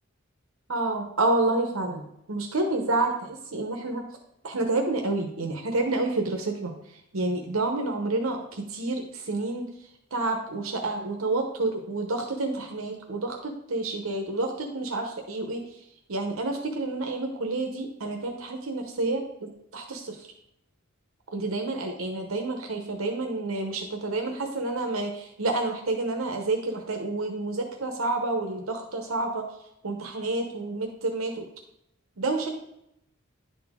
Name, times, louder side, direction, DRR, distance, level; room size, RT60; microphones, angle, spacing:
voice 1, 0.7-4.0 4.4-6.7 7.1-9.7 10.1-15.6 16.1-20.2 21.3-29.4 29.8-31.5 32.2-32.5, right 2 dB, 75° right, 3 dB, 1.0 m, -29 dB
10.0 x 4.3 x 3.6 m, 0.80 s
head